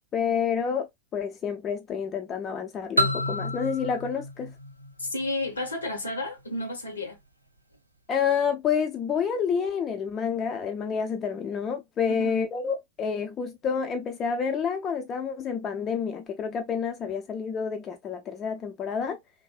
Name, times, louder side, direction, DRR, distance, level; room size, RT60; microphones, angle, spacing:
voice 1, 0.1-0.9 1.1-4.5 8.1-19.2, left 6 dB, 30° left, 0.3 m, -29 dB
sound 1, 3.0-5.7, left 1 dB, 90° right, 0.3 m, -29 dB
voice 2, 5.0-7.2 12.1-12.4, left 2 dB, 75° left, 0.9 m, -32 dB
2.6 x 2.4 x 2.3 m
figure-of-eight pair, 90°, 0 cm